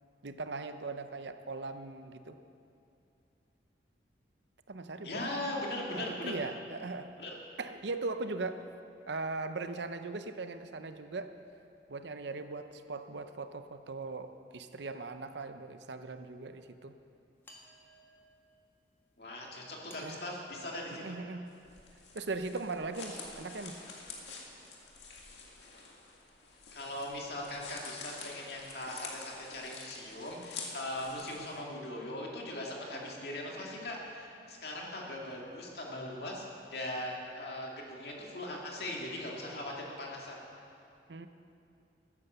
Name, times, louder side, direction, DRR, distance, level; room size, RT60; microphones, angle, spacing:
voice 1, 0.2-2.4 4.7-5.4 5.9-7.1 7.6-8.7 9.1-11.3 11.9-16.9 20.0-20.2 20.9-21.5 22.1-23.8 41.1-41.3, right 3 dB, 80° right, 9 dB, 0.7 m, -39 dB
voice 2, 5.0-6.4 7.2-7.4 19.2-21.2 26.7-40.4, left 1 dB, 60° left, -2 dB, 2.3 m, -40 dB
sound 1, 17.4-18.5 19.9-21.8, right 1 dB, 15° left, 1.5 m, -58 dB
sound 2, 21.5-31.6, left 4 dB, 80° left, 2.0 m, -48 dB
13.0 x 9.8 x 6.9 m, 2.6 s
head